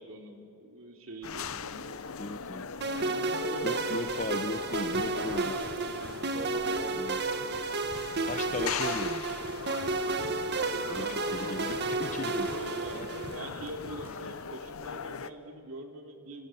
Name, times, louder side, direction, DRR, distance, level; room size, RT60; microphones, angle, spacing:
voice 1, 0.0-5.3 6.3-7.0 7.3-7.7 10.4-11.8 12.4-16.5, right 1 dB, 70° right, 3 dB, 3.3 m, -44 dB
sound 1, 1.2-15.3, left 5 dB, 75° left, 0.9 m, -40 dB
voice 2, 2.2-2.7 3.6-5.6 6.9-7.2 8.3-9.5 10.9-12.5 12.9-13.1, left 2 dB, 35° left, 13 dB, 0.8 m, -37 dB
sound 2, 2.8-13.5, right 3 dB, 50° right, 1.4 m, -32 dB
sound 3, 4.0-14.4, equal, 30° right, 4.2 m, -51 dB
27.0 x 27.0 x 7.8 m, 2.7 s
head